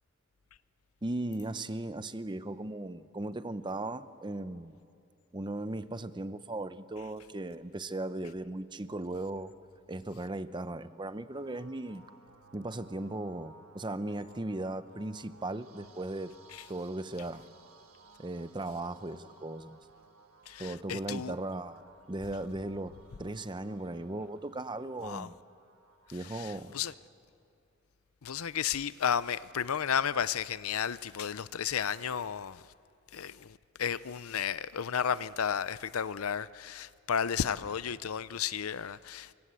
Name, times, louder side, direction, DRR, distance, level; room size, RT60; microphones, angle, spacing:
voice 1, 1.0-4.8 5.3-9.5 9.9-12.0 12.5-16.3 16.7-17.4 18.2-19.8 20.6-25.4 26.1-26.7, right 2 dB, 20° right, 0.7 m, -37 dB
sound 1, 11.3-26.9, right 3 dB, 90° right, 1.6 m, -59 dB
voice 2, 20.5-21.3 25.0-25.3 26.2-26.9 28.2-32.6 33.1-39.3, left 8 dB, 90° left, 0.6 m, -33 dB
28.5 x 23.5 x 8.2 m
head